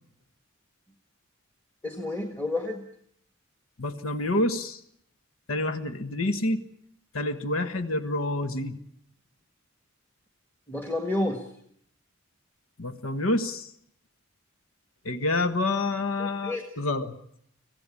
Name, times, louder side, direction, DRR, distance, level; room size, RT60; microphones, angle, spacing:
voice 1, 1.8-2.8 10.7-11.5 16.2-16.7, left 2 dB, 10° left, 5 dB, 1.7 m, -30 dB
voice 2, 3.8-4.8 5.5-6.6 7.1-8.8 12.8-13.7 15.0-17.2, left 2 dB, 80° left, 10 dB, 1.4 m, -28 dB
25.0 x 16.5 x 8.4 m, 0.70 s
head